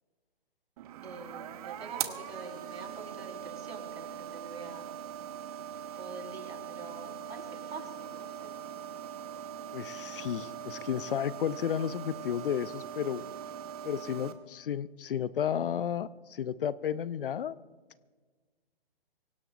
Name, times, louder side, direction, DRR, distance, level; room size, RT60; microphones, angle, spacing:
sound 1, 0.8-14.3, right 9 dB, 35° right, 1.1 m, -41 dB
voice 1, 1.0-4.9 5.9-8.5, right 3 dB, 85° right, 1 dB, 4.8 m, -46 dB
voice 2, 9.7-13.2 13.8-17.6, left 9 dB, 60° left, 18 dB, 0.7 m, -32 dB
24.5 x 17.0 x 2.6 m, 1.4 s
figure-of-eight pair, 130°, 31 cm